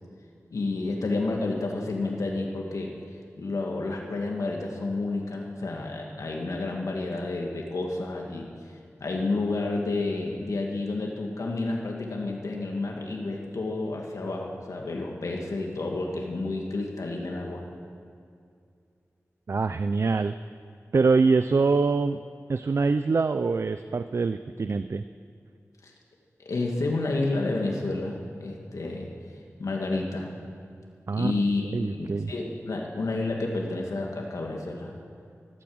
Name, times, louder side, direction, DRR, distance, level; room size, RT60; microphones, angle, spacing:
voice 1, 0.5-2.9 3.4-8.5 9.0-17.7 25.8-25.9 26.5-29.1 29.6-30.3 31.2-35.0, left 2 dB, 90° left, 0 dB, 1.9 m, -30 dB
voice 2, 19.5-20.3 20.9-22.2 22.5-25.0 31.1-31.3 31.7-32.3, right 4 dB, 55° right, 11 dB, 0.4 m, -24 dB
15.0 x 12.5 x 7.9 m, 2.3 s
wide cardioid pair, 90°, 5 cm